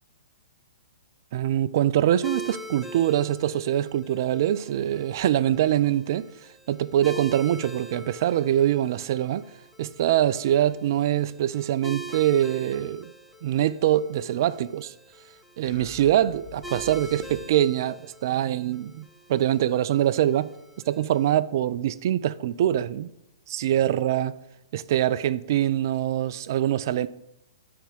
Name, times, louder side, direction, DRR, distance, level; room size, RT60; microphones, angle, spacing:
voice 1, 1.3-6.3 6.7-9.4 9.8-13.1 13.4-14.9 15.6-20.5 20.9-23.1 23.5-24.3 24.7-27.1, right 12 dB, 45° right, 0.3 m, -24 dB
sound 1, 2.2-21.4, right 1 dB, ahead, 0.6 m, -44 dB
sound 2, 15.6-17.9, left 1 dB, 15° left, 2.7 m, -45 dB
10.0 x 3.5 x 6.8 m
figure-of-eight pair, 115°, 3 cm